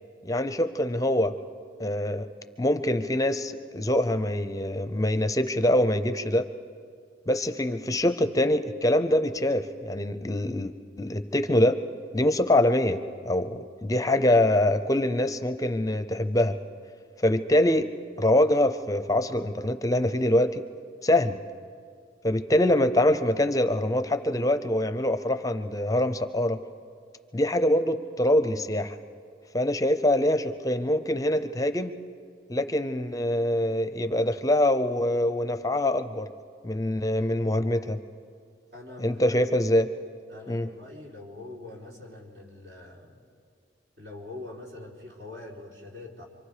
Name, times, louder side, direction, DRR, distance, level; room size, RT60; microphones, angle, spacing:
voice 1, 0.2-1.3 1.8-2.3 2.6-6.5 7.3-11.8 12.1-13.0 13.3-16.6 17.2-17.9 18.2-20.6 21.0-21.4 22.2-26.6 27.3-29.0 29.5-31.9 32.5-36.3 36.6-38.0 39.0-39.9 40.5-40.7, left 1 dB, 20° left, 10 dB, 0.6 m, -24 dB
voice 2, 38.7-39.5 40.3-43.2 44.0-46.2, left 2 dB, 65° right, -2 dB, 3.8 m, -43 dB
27.0 x 25.0 x 5.0 m, 2.1 s
head